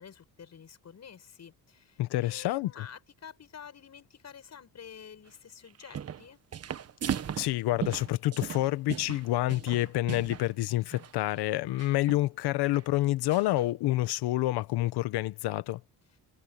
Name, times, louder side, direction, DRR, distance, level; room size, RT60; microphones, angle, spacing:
voice 1, 0.0-6.4, left 7 dB, 45° left, 7.0 m, -49 dB
voice 2, 2.0-2.9 7.4-15.8, left 16 dB, 85° left, 1.3 m, -28 dB
sound 1, 5.7-6.3 6.5-10.5 10.8-11.1 11.8-12.3 12.7-12.8 13.3-13.7, right 8 dB, 40° right, 1.2 m, -37 dB
cardioid pair, 115°, 39 cm